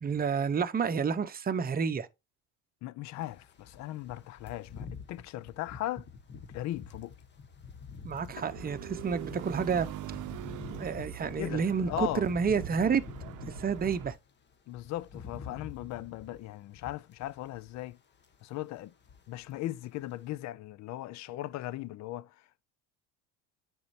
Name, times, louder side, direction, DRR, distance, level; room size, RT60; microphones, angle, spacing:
voice 1, 0.0-2.1 8.0-9.9 10.8-13.0 13.6-14.2, right 6 dB, 25° right, 0.9 m, -29 dB
voice 2, 2.8-6.1 6.5-7.2 8.4-8.5 11.4-12.2 14.7-18.0 18.4-18.9 19.3-22.4, left 15 dB, 50° left, 0.6 m, -38 dB
sound 1, 3.2-14.2 14.5-17.9 18.2-18.5 18.8-19.6 19.8-20.0, left 5 dB, 30° left, 1.2 m, -47 dB
sound 2, 8.3-14.1, right 13 dB, 55° right, 0.7 m, -42 dB
9.6 x 4.5 x 2.7 m
supercardioid pair, 85°, 36 cm